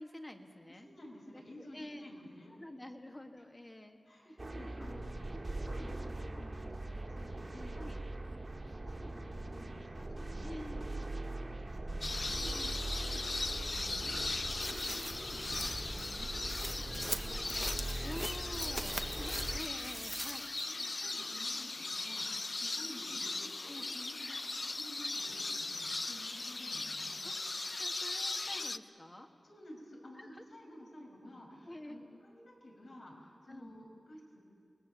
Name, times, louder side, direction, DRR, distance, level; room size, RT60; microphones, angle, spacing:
voice 1, 0.0-0.9 1.3-1.4 1.7-2.1 2.6-4.0 7.8-8.0 10.4-10.8 12.5-12.7 18.0-20.5 23.7-23.9 27.2-29.3 30.2-30.4 31.7-32.0 33.5-33.7, left 1 dB, 25° left, 4 dB, 1.8 m, -48 dB
voice 2, 0.7-2.5 3.3-3.4 4.0-7.8 8.5-10.9 11.2-14.2 14.6-18.1 18.4-18.5 19.8-19.9 20.3-27.2 29.4-34.4, equal, 80° left, -1 dB, 5.7 m, -53 dB
sound 1, 4.4-19.6, right 2 dB, 40° right, 2.2 m, -41 dB
sound 2, 12.0-28.8, left 2 dB, 45° left, 0.5 m, -39 dB
sound 3, 14.5-20.8 21.2-21.3, right 1 dB, 15° right, 0.9 m, -43 dB
29.0 x 20.5 x 7.0 m, 2.3 s
wide cardioid pair, 85°, 0 cm